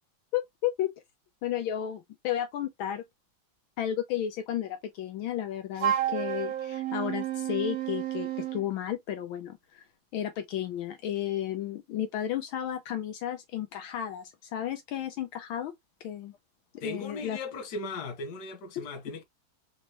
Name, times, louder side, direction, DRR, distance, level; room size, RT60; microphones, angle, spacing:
voice 1, 0.3-0.9 1.4-3.0 3.8-9.8 10.1-15.7 16.0-16.3 16.7-17.4 18.8-18.9, left 11 dB, 75° left, 1.4 m, -33 dB
Wind instrument woodwind instrument, 5.8-8.7, right 11 dB, 75° right, 0.8 m, -31 dB
voice 2, 16.8-19.2, left 3 dB, 60° left, 1.5 m, -37 dB
4.0 x 2.9 x 2.9 m
omnidirectional pair, 2.3 m